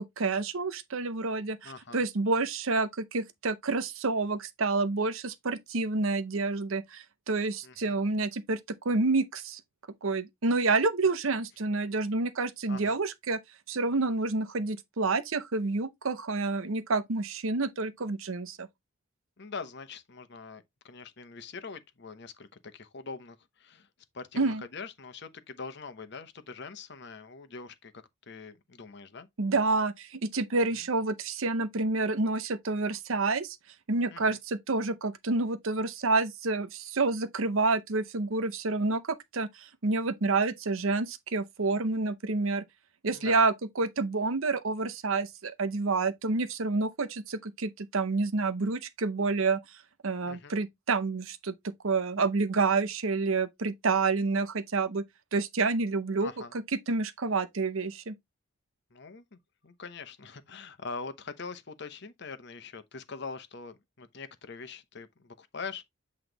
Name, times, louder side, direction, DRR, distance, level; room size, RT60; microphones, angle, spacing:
voice 1, 0.0-9.6 10.0-13.4 13.7-18.7 24.4-24.6 29.4-33.6 33.9-42.6 43.0-49.6 50.0-55.0 55.3-56.3 56.9-58.1, right 3 dB, 75° right, 0.7 m, -28 dB
voice 2, 1.6-2.1 7.6-8.0 12.7-13.0 19.4-23.9 24.1-27.9 28.3-29.3 30.7-30.9 34.1-34.4 43.1-43.4 50.2-50.5 56.2-56.5 58.9-65.8, left 4 dB, 55° left, 0.9 m, -43 dB
8.0 x 3.2 x 3.9 m
head